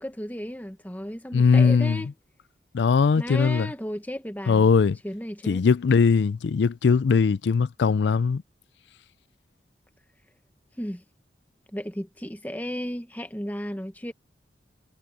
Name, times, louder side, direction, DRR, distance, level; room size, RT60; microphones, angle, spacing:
voice 1, 0.0-2.1 3.2-4.7 5.0-5.6 10.8-11.0 11.7-14.1, equal, 10° left, 1.3 m, -34 dB
voice 2, 1.3-2.0 2.7-3.7 4.5-5.0 5.5-8.4, left 5 dB, 75° left, 0.4 m, -20 dB
head